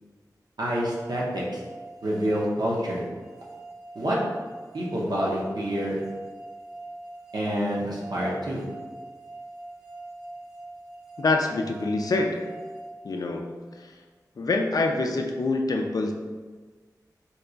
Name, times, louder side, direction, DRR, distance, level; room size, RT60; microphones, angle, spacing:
voice 1, 0.6-1.6 2.0-3.0 3.9-4.2 4.7-6.0 7.3-8.6, equal, 75° right, -4 dB, 0.7 m, -27 dB
sound 1, 0.7-13.7, right 2 dB, 10° right, 0.5 m, -43 dB
voice 2, 11.2-12.5 13.0-13.6 14.4-16.1, left 3 dB, 60° left, 2 dB, 0.3 m, -25 dB
2.9 x 2.3 x 3.8 m, 1.4 s
wide cardioid pair, 65°, 7 cm